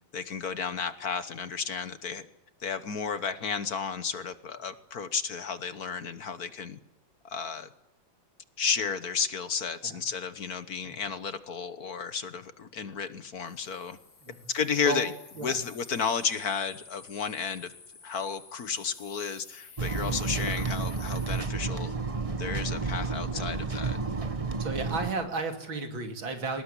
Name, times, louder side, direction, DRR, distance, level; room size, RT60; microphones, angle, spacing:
voice 1, 0.1-2.3 2.6-6.8 7.2-7.7 8.6-14.0 14.5-15.1 15.4-17.7 18.0-21.9 22.4-24.0, left 6 dB, 55° left, 12 dB, 1.5 m, -32 dB
sound 1, 13.5-21.5, left 5 dB, 90° left, 3.5 m, -51 dB
sound 2, 19.8-25.1, right 4 dB, 25° right, 1.0 m, -31 dB
voice 2, 24.6-26.6, right 3 dB, 80° right, 5 dB, 3.4 m, -34 dB
24.0 x 19.5 x 9.9 m, 0.88 s
omnidirectional pair, 2.1 m